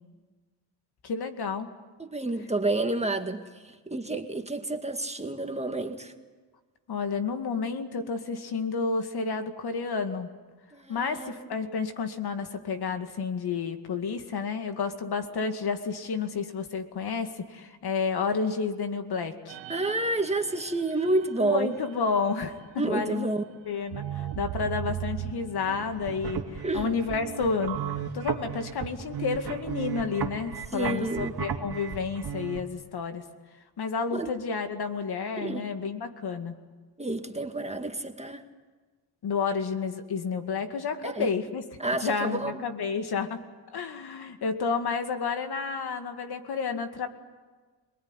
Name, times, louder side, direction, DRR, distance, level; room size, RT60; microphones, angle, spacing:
voice 1, 1.0-1.7 6.9-10.3 10.9-19.6 21.4-22.6 22.8-23.3 23.7-27.8 28.1-33.2 33.8-36.5 39.2-41.6 42.0-43.4 43.7-47.1, left 5 dB, 60° left, 7 dB, 2.3 m, -30 dB
voice 2, 2.0-6.1 10.7-11.3 19.7-21.8 22.8-23.4 26.6-27.0 30.7-31.3 34.1-34.3 35.4-35.7 37.0-38.4 41.0-41.3 41.8-42.6, right 2 dB, 15° right, 5 dB, 1.9 m, -29 dB
sound 1, 19.5-23.1 23.8-28.0, right 12 dB, 80° right, 1.3 m, -39 dB
sound 2, 25.9-32.6, right 7 dB, 55° right, 2.6 m, -35 dB
26.5 x 20.0 x 9.9 m, 1.4 s
cardioid pair, 85°, 44 cm